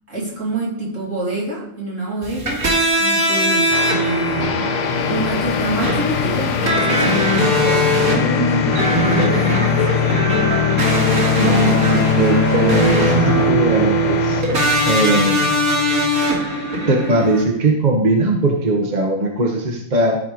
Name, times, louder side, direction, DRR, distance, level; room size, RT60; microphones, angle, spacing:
voice 1, 0.1-2.7 3.0-3.7 4.0-4.8 5.1-10.2 11.1-11.4, right 2 dB, 65° right, -6 dB, 3.6 m, -26 dB
sound 1, 2.2-17.4, right 1 dB, 85° right, 2.6 m, -20 dB
sound 2, 3.7-14.4, left 6 dB, 55° left, 0.5 m, -26 dB
sound 3, 4.4-16.6, left 11 dB, 80° left, 1.1 m, -23 dB
voice 2, 11.4-14.4 14.9-15.4 16.9-20.2, right 2 dB, 35° right, 1 dB, 1.2 m, -19 dB
13.5 x 4.5 x 5.0 m, 0.75 s
omnidirectional pair, 1.4 m